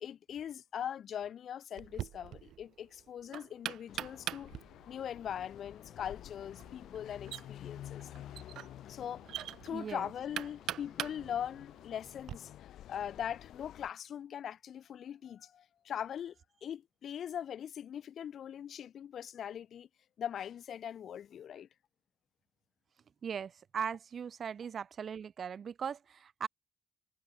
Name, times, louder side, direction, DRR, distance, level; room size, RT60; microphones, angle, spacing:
voice 1, 0.0-4.5 4.9-8.1 8.8-9.3 9.6-12.5 12.9-16.3 16.6-19.9 20.2-21.7, left 9 dB, 65° left, 0.8 m, -41 dB
Knock, 1.8-12.4, right 12 dB, 85° right, 0.5 m, -44 dB
sound 1, 3.9-13.9, left 12 dB, 85° left, 7.7 m, -51 dB
voice 2, 9.7-10.1 23.2-26.5, right 7 dB, 55° right, 1.6 m, -39 dB
cardioid pair, 100°, 0 cm